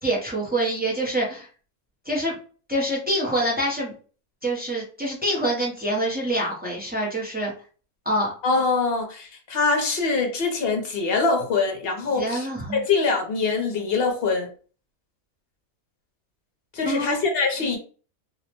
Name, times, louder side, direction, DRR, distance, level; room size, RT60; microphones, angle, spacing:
voice 1, 0.0-1.5 2.1-2.4 2.7-3.9 4.4-7.5 8.0-8.3 12.1-12.8 16.8-17.2 17.6-17.8, right 1 dB, 15° right, 0.3 m, -26 dB
voice 2, 8.4-14.5 16.7-17.8, left 4 dB, 55° left, 0.8 m, -24 dB
2.7 x 2.0 x 2.8 m
omnidirectional pair, 1.5 m